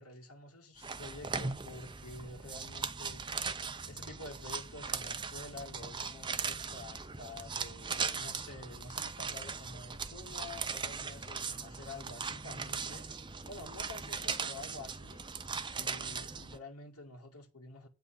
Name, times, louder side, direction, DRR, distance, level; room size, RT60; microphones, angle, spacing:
voice 1, 0.0-13.1 13.5-15.2 15.7-17.9, left 2 dB, 85° left, 2.2 m, -49 dB
sound 1, 0.8-16.6, right 5 dB, 20° right, 0.8 m, -39 dB
8.6 x 6.0 x 7.3 m
head